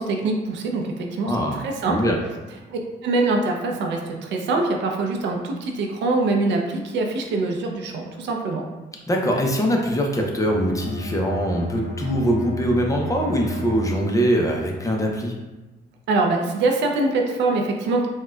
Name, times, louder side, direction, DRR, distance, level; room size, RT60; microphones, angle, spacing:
voice 1, 0.0-1.3 1.6-2.0 2.7-8.6 16.1-18.1, right 3 dB, 75° right, 2 dB, 0.5 m, -23 dB
voice 2, 1.2-1.6 1.9-2.2 9.1-15.3, equal, 15° left, 0 dB, 0.5 m, -22 dB
Bowed string instrument, 10.4-14.5, equal, 50° left, 1.5 m, -32 dB
4.1 x 2.2 x 2.3 m, 1.2 s
cardioid pair, 95°, 19 cm